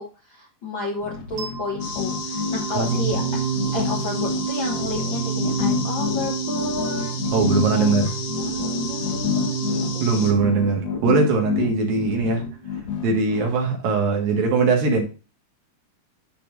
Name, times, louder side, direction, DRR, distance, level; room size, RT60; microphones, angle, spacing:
voice 1, 0.0-3.2 3.5-7.1 7.7-7.9 8.5-9.5 9.9-10.3, left 2 dB, 80° left, -1 dB, 1.0 m, -31 dB
sound 1, 1.0-13.6, left 7 dB, 45° left, 1.6 m, -29 dB
sound 2, 1.4-12.3, right 8 dB, 40° right, 2.5 m, -30 dB
sound 3, 1.8-10.3, left 6 dB, 65° left, 1.9 m, -35 dB
voice 2, 2.7-3.2 7.3-8.2 10.0-12.4 13.0-15.0, right 4 dB, 70° right, 1 dB, 3.5 m, -21 dB
13.0 x 4.4 x 2.6 m, 0.33 s
omnidirectional pair, 4.4 m